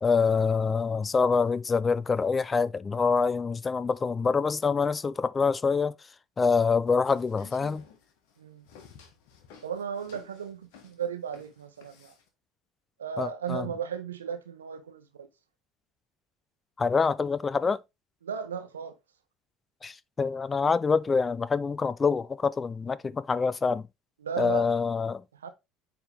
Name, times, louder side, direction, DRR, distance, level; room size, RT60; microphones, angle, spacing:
voice 1, 0.0-5.9 6.4-7.8 13.2-13.7 16.8-17.8 19.8-23.9 24.4-25.2, left 5 dB, 25° left, 0.5 m, -26 dB
sound 1, 6.9-12.3, left 6 dB, 65° left, 1.5 m, -53 dB
voice 2, 9.6-12.1 13.0-15.3 18.2-19.0 24.2-24.7 25.4-25.5, right 7 dB, 80° right, 0.9 m, -35 dB
8.5 x 3.7 x 3.4 m
figure-of-eight pair, 65°, 0 cm